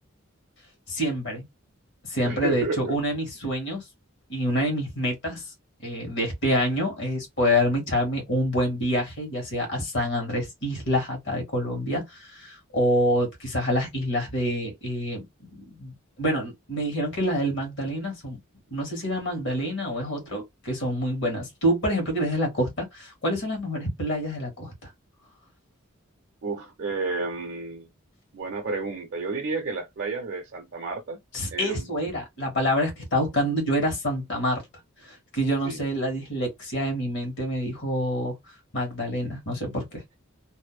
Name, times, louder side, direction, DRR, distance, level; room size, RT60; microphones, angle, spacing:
voice 1, 0.9-1.5 2.1-3.8 4.3-5.4 5.8-12.0 12.3-18.4 18.7-24.7 31.3-34.6 35.3-38.3 38.7-40.0, equal, 60° left, 1.4 m, -27 dB
voice 2, 2.2-3.0 26.4-27.9 28.3-31.2 31.5-31.9 35.6-35.8, right 3 dB, 55° right, 0.5 m, -31 dB
2.6 x 2.1 x 2.2 m
head